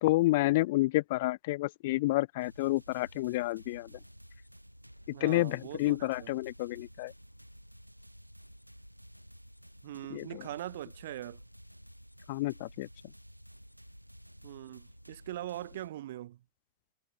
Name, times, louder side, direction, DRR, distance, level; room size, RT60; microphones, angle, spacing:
voice 1, 0.0-4.0 5.2-7.1 10.1-10.4 12.3-12.9, left 19 dB, 50° left, 0.3 m, -29 dB
sound 1, 2.4-15.9, equal, 90° right, 1.3 m, -53 dB
voice 2, 5.1-6.3 9.8-11.4 14.4-16.4, right 13 dB, 55° right, 0.5 m, -41 dB
figure-of-eight pair, 90°, 0 cm